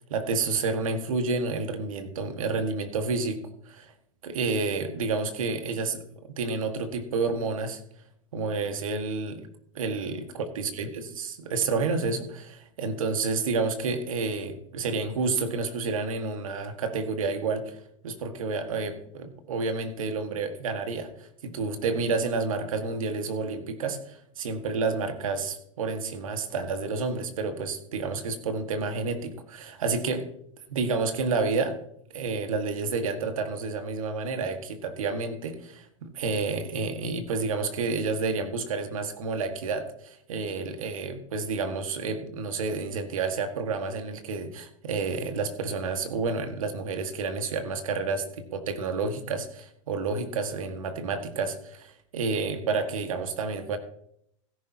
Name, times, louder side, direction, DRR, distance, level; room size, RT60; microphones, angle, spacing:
voice 1, 0.1-3.9 4.2-7.8 8.3-9.4 9.7-30.3 30.7-31.8 32.1-53.8, right 4 dB, 80° right, 7 dB, 1.8 m, -30 dB
16.0 x 10.5 x 2.9 m, 0.71 s
hypercardioid pair, 130°, 17 cm